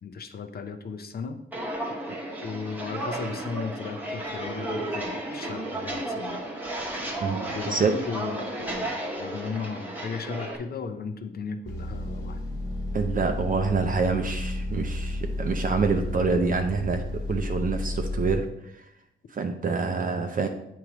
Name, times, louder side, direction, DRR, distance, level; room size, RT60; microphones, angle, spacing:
voice 1, 0.0-1.4 2.4-6.4 7.5-12.4, left 5 dB, 50° left, 8 dB, 0.5 m, -36 dB
Walk footsteps, 1.5-10.6, right 1 dB, 10° right, 1.0 m, -33 dB
voice 2, 7.2-7.9 12.9-18.8 19.3-20.5, right 4 dB, 40° right, 5 dB, 0.5 m, -27 dB
sound 1, 11.7-18.4, left 1 dB, 15° left, 1.2 m, -32 dB
8.4 x 3.1 x 4.9 m, 0.82 s
wide cardioid pair, 150°, 21 cm